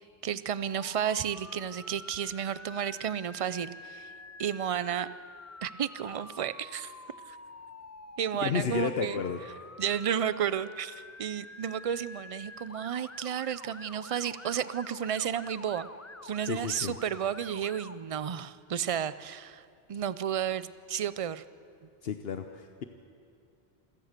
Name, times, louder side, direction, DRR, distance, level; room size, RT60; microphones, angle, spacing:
voice 1, 0.2-4.1 4.4-5.1 5.6-6.9 7.3-7.4 8.2-9.2 9.8-15.9 16.2-19.6 19.9-21.4, right 9 dB, 45° right, 15 dB, 0.5 m, -32 dB
Motor vehicle (road) / Siren, 0.6-17.9, left 2 dB, 20° left, 0.6 m, -48 dB
voice 2, 8.4-9.4 16.4-16.9 22.0-22.8, left 7 dB, 75° left, 7 dB, 1.1 m, -32 dB
26.5 x 17.0 x 6.7 m, 2.5 s
omnidirectional pair, 1.0 m